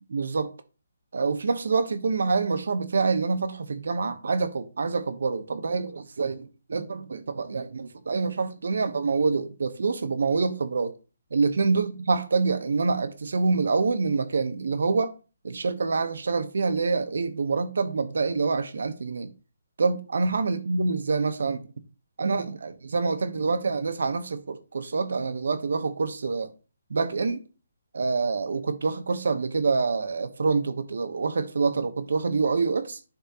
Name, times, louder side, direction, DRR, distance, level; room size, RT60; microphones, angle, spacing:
voice 1, 0.1-0.5 1.1-10.9 11.3-15.1 15.4-19.3 19.8-21.6 22.2-26.5 26.9-27.4 27.9-33.0, right 4 dB, 75° right, 0.9 m, -26 dB
10.5 x 3.6 x 2.8 m
hypercardioid pair, 160°, 0 cm